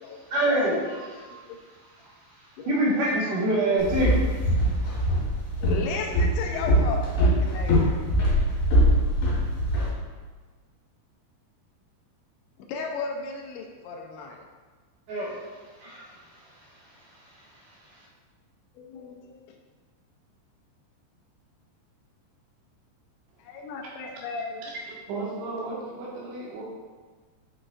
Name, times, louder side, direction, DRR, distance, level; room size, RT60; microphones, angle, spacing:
voice 1, 0.3-1.3 2.0-2.1 2.7-4.6 15.1-15.4 15.8-16.1, right 1 dB, 60° right, -6 dB, 2.7 m, -25 dB
Walk footsteps, 3.8-9.9, equal, 60° left, 3.6 m, -23 dB
voice 2, 5.6-8.0 12.7-14.4 18.8-19.6 23.4-24.6, left 4 dB, 85° left, 1 dB, 3.0 m, -35 dB
voice 3, 24.8-26.6, right 3 dB, 90° right, -5 dB, 4.1 m, -35 dB
9.4 x 6.1 x 2.5 m, 1.4 s
omnidirectional pair, 5.1 m